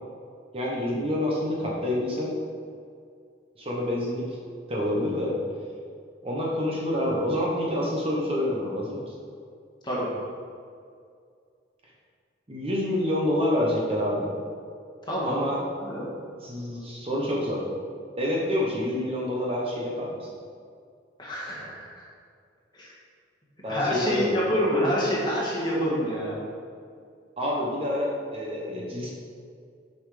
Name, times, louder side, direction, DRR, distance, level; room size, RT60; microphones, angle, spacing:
voice 1, 0.5-2.3 3.6-4.4 4.7-5.3 6.2-9.0 12.5-14.3 15.3-15.6 16.4-17.6 18.2-20.3 23.6-24.3 27.4-29.1, left 1 dB, 30° right, -3 dB, 1.0 m, -27 dB
voice 2, 15.1-15.4 15.8-16.1 21.2-22.0 22.7-22.9 23.7-26.4, equal, 25° left, -6 dB, 1.8 m, -27 dB
7.0 x 5.5 x 5.0 m, 2.3 s
head